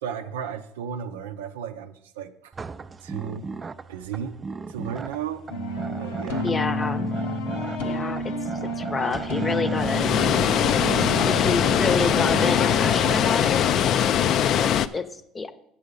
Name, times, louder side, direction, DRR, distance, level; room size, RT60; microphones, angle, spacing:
voice 1, 0.0-2.5 3.0-3.5 3.9-4.4 4.7-5.5 6.0-6.5 14.3-14.7, right 8 dB, 90° right, 8 dB, 0.5 m, -34 dB
sound 1, 2.5-13.2, right 4 dB, 25° right, 0.4 m, -36 dB
sound 2, 5.5-12.9, left 1 dB, 85° left, 0.9 m, -29 dB
voice 2, 6.4-7.2 7.8-8.3 8.6-10.4 11.3-13.7 14.6-15.5, left 4 dB, 25° left, 11 dB, 0.8 m, -28 dB
Water, 9.8-14.9, left 9 dB, 55° left, 0.4 m, -21 dB
8.4 x 6.9 x 5.2 m, 0.76 s
hypercardioid pair, 80°, 0 cm